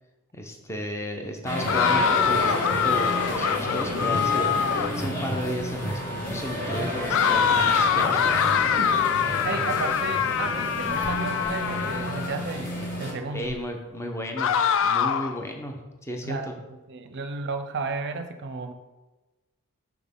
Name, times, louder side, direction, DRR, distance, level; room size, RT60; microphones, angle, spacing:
voice 1, 0.3-8.7 13.3-14.5 14.8-15.8 16.0-16.6, left 1 dB, 15° left, 3 dB, 0.7 m, -34 dB
sound 1, 1.4-13.1, equal, 40° left, 1.8 m, -30 dB
sound 2, 1.7-5.1 7.1-12.4 14.4-15.4, left 7 dB, 60° left, 0.4 m, -24 dB
Zipper (clothing), 5.7-7.5 8.9-9.0 10.6-11.6 12.1-12.2 12.9-13.7 14.9-15.0 15.4-15.5, equal, 10° right, 1.4 m, -46 dB
voice 2, 8.8-12.7 13.0-13.6 16.2-18.7, right 3 dB, 50° right, 8 dB, 0.5 m, -33 dB
6.2 x 5.9 x 3.6 m, 1.2 s
head